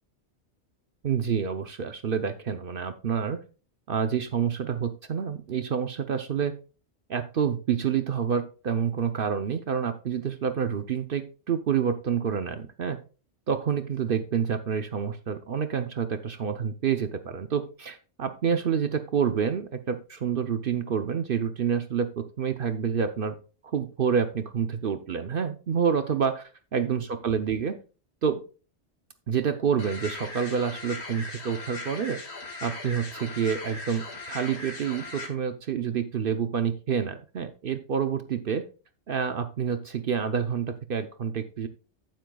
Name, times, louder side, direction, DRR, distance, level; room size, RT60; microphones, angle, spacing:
voice 1, 1.0-3.4 3.9-6.5 7.1-13.0 13.5-23.3 23.6-27.7 28.2-28.4 29.3-32.2 32.6-38.6 39.1-41.7, right 7 dB, 55° right, 9 dB, 0.8 m, -28 dB
sound 1, 29.8-35.3, left 3 dB, 70° left, 2.1 m, -39 dB
14.0 x 7.6 x 2.3 m, 0.34 s
omnidirectional pair, 1.2 m